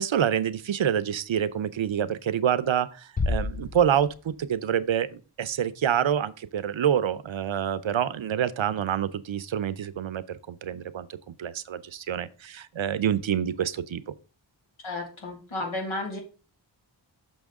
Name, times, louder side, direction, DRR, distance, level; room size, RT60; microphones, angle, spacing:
voice 1, 0.0-14.1, right 9 dB, 75° right, 0.6 m, -27 dB
Bass drum, 3.2-4.6, left 3 dB, 20° left, 0.4 m, -30 dB
voice 2, 14.8-16.2, left 2 dB, 90° left, 2.1 m, -32 dB
6.2 x 6.2 x 3.6 m
wide cardioid pair, 70°, 47 cm